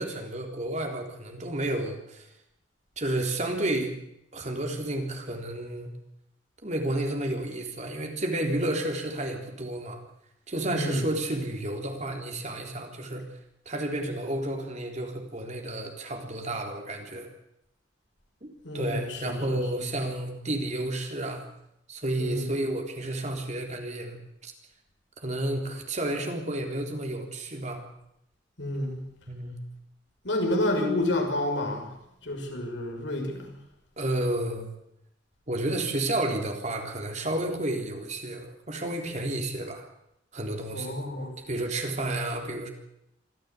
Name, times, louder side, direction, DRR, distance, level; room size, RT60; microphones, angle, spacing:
voice 1, 0.0-2.3 3.0-4.0 4.3-5.9 6.6-10.0 10.5-13.2 13.7-17.3 18.4-18.5 18.7-21.4 21.9-24.5 25.2-27.9 29.2-29.6 34.0-34.7 35.5-39.9 40.3-41.0 41.5-42.7, right 1 dB, 40° right, 3 dB, 3.7 m, -31 dB
voice 2, 10.7-11.1 18.6-19.8 22.2-22.5 28.6-29.0 30.2-31.9 32.2-33.6 40.7-41.4, left 1 dB, 75° left, 3 dB, 5.9 m, -29 dB
25.0 x 14.5 x 8.4 m, 0.79 s
head